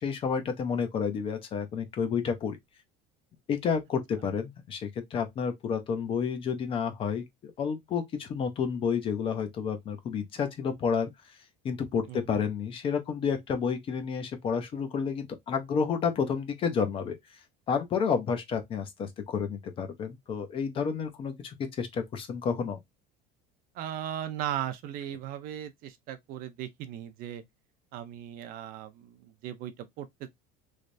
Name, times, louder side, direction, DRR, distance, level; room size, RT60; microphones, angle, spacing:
voice 1, 0.0-2.6 3.5-11.4 11.6-22.8, left 6 dB, 25° left, 0.6 m, -30 dB
voice 2, 12.1-12.4 23.7-27.4 27.9-30.3, right 11 dB, 45° right, 0.5 m, -37 dB
3.3 x 3.1 x 2.5 m
cardioid pair, 170°, 20 cm